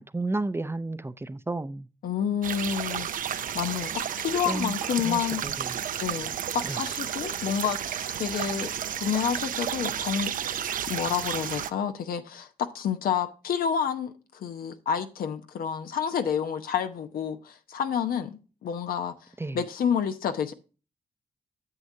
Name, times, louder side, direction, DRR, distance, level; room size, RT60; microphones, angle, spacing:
voice 1, 0.0-1.9 4.5-4.8 5.0-5.7 6.7-6.8 19.4-19.6, right 2 dB, 15° right, 0.6 m, -32 dB
voice 2, 2.0-5.4 6.0-10.3 10.8-19.1 19.5-20.5, left 8 dB, 80° left, 0.9 m, -29 dB
sound 1, 2.4-11.7, right 9 dB, 65° right, 0.5 m, -32 dB
9.6 x 7.3 x 2.7 m
cardioid pair, 60°, 15 cm